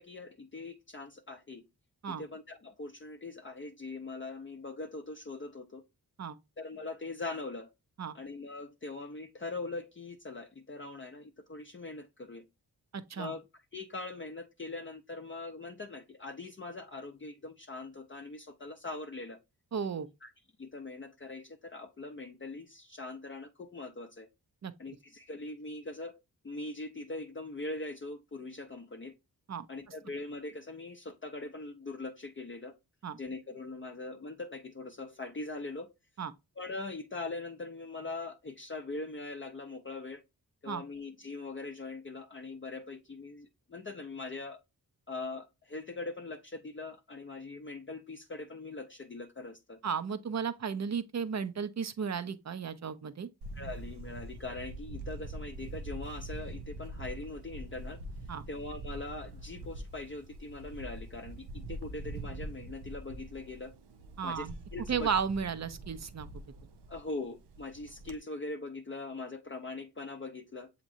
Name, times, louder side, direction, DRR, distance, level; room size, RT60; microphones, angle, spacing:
voice 1, 0.0-1.6 2.1-5.8 6.6-7.7 8.1-12.5 13.2-13.4 13.7-19.4 20.2-20.3 20.6-24.3 24.8-29.1 29.7-32.8 33.2-35.9 36.6-40.2 40.6-44.6 45.1-49.8 53.5-58.0 58.5-63.8 64.2-65.1 66.9-70.7, left 3 dB, 30° left, 0.6 m, -42 dB
voice 2, 12.9-13.3 19.7-20.1 24.6-24.7 29.5-29.7 33.0-33.2 36.2-36.3 40.7-40.8 49.8-53.3 58.3-58.4 64.2-64.5 64.9-66.3, right 6 dB, 45° right, 0.6 m, -34 dB
Camera, 53.4-68.2, right 2 dB, 85° right, 0.6 m, -44 dB
7.0 x 2.9 x 2.6 m
cardioid pair, 45°, 39 cm